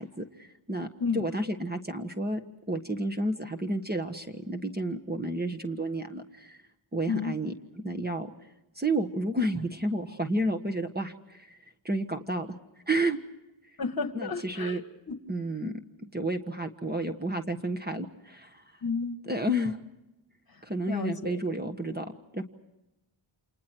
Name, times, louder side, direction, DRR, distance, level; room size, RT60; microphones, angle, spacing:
voice 1, 0.0-2.4 2.7-6.6 6.9-7.5 7.8-8.3 8.7-11.6 11.8-12.6 12.9-13.2 14.1-14.8 15.3-18.6 19.3-19.8 20.6-22.4, right 1 dB, 20° right, 7 dB, 1.4 m, -31 dB
voice 2, 13.8-14.8 15.1-15.2 18.8-19.2 20.5-21.4, left 5 dB, 45° left, 8 dB, 1.9 m, -32 dB
29.5 x 27.5 x 4.6 m, 0.93 s
wide cardioid pair, 105°, 50 cm